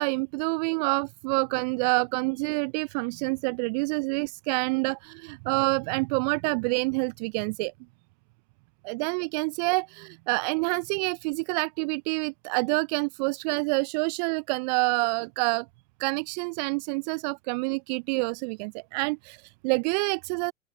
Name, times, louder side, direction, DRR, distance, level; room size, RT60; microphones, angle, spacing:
voice 1, 0.0-7.7 8.8-15.7 16.0-20.5, right 29 dB, 35° right, 0.6 m, -27 dB
open air
figure-of-eight pair, 95°, 38 cm